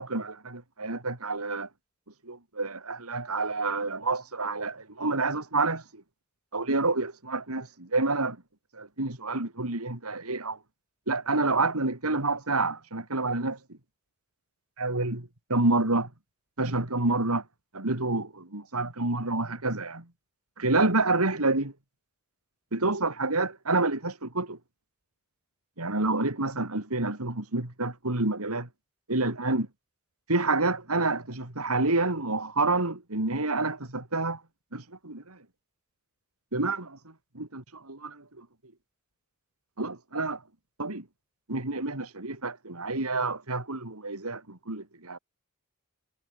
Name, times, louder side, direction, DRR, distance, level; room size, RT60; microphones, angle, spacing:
voice 1, 0.0-1.7 2.2-6.0 6.5-8.4 8.7-10.6 11.1-13.6 14.8-16.1 16.6-17.4 17.7-20.0 20.6-21.7 22.7-24.6 25.8-28.7 29.1-29.7 30.3-34.4 34.7-35.4 36.5-37.0 37.4-38.5 39.8-40.4 40.8-41.0 41.5-45.2, right 3 dB, 80° right, 3.6 m, -28 dB
head